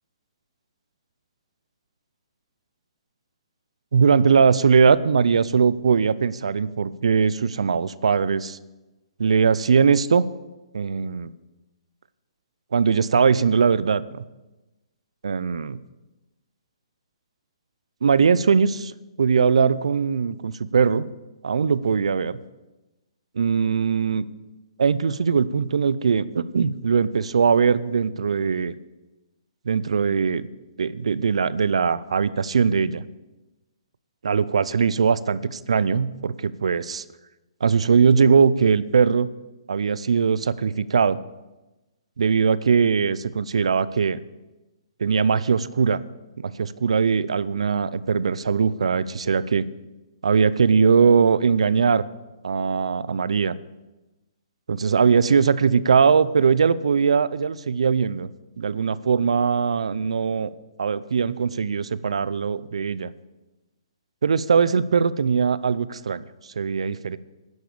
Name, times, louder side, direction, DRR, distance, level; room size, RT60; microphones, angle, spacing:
voice 1, 3.9-8.6 9.2-10.2 10.7-11.3 12.7-14.2 15.2-15.8 18.0-18.9 19.2-21.1 21.4-22.4 23.4-24.3 24.8-28.7 29.7-30.5 30.8-33.0 34.2-37.0 37.6-39.3 39.7-41.2 42.2-44.2 45.0-46.0 46.4-49.6 50.2-52.0 52.4-53.5 54.7-58.3 58.6-60.5 60.8-63.1 64.2-66.2 66.6-67.2, right 6 dB, 75° right, 17 dB, 0.5 m, -20 dB
10.5 x 7.0 x 8.5 m, 1.1 s
hypercardioid pair, 145°, 3 cm